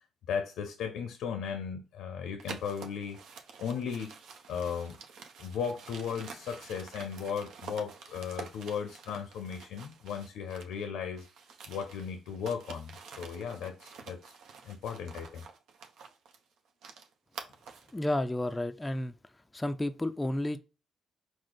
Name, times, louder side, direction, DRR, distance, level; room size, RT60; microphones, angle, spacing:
voice 1, 0.3-3.2 3.6-4.1 4.5-5.0 5.4-11.3 11.7-14.3 14.6-15.4, left 7 dB, 85° left, 0.5 m, -36 dB
sound 1, 2.4-10.8 11.1-18.0, right 5 dB, 80° right, 0.6 m, -48 dB
voice 2, 17.9-19.1 19.5-20.6, left 1 dB, 15° left, 0.3 m, -31 dB
4.8 x 2.0 x 3.9 m
cardioid pair, 90°, 0 cm